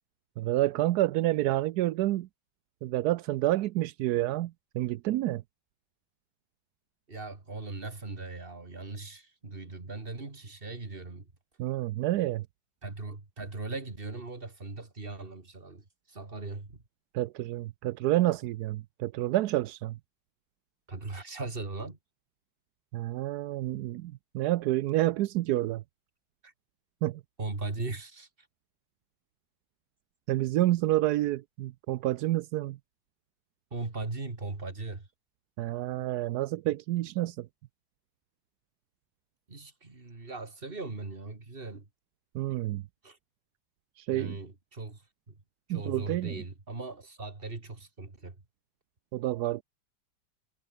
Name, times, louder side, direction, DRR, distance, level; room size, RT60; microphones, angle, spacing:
voice 1, 0.4-2.3 2.8-5.4 11.6-12.5 17.1-20.0 22.9-25.8 27.0-27.2 30.3-32.8 35.6-37.5 42.3-42.8 44.0-44.4 45.7-46.4 49.1-49.6, right 15 dB, 75° right, 0.9 m, -29 dB
voice 2, 7.1-11.3 12.8-16.8 20.9-22.0 26.4-26.5 27.4-28.3 33.7-35.1 39.5-41.9 43.0-43.2 44.1-45.0 45.3-45.4 45.7-48.4, right 3 dB, 25° right, 2.8 m, -39 dB
omnidirectional pair, 2.2 m